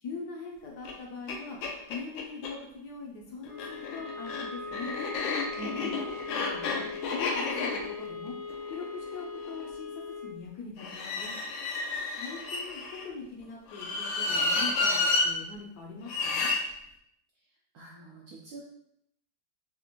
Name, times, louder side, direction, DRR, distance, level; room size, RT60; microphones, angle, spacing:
voice 1, 0.0-4.9 5.7-6.8 7.1-8.4 8.7-11.4 12.1-16.5, left 4 dB, 70° left, -1 dB, 1.0 m, -42 dB
sound 1, 0.9-1.0 1.3-1.4 1.6-2.5 3.5-9.6 10.8-13.1 13.7-15.3 16.1-16.6, left 3 dB, 85° left, 1.4 m, -31 dB
sound 2, 3.4-10.4, left 4 dB, 20° right, 0.6 m, -40 dB
voice 2, 5.6-6.0 17.7-18.6, right 4 dB, 75° right, -3 dB, 0.8 m, -44 dB
4.2 x 2.4 x 2.8 m, 0.77 s
omnidirectional pair, 2.1 m